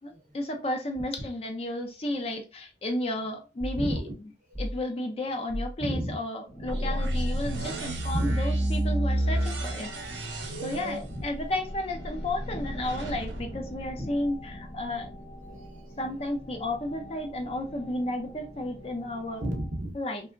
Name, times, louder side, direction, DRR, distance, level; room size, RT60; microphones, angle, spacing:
voice 1, 0.0-4.0 4.6-9.9 10.6-15.1 16.0-19.4 19.9-20.2, left 1 dB, 35° left, 0.4 m, -32 dB
sound 1, 3.6-3.9 4.5-4.8 5.5-5.8 7.4-7.7 9.3-9.8, equal, 10° left, 0.7 m, -36 dB
voice 2, 3.7-4.1 5.8-6.2 8.1-8.4 11.1-11.2 14.0-14.1 15.4-15.9 19.4-20.0, equal, 45° right, 0.6 m, -33 dB
sound 2, 6.5-19.8, equal, 60° left, 0.9 m, -43 dB
sound 3, 6.7-14.6, right 1 dB, 90° right, 0.7 m, -31 dB
2.8 x 2.2 x 2.4 m
head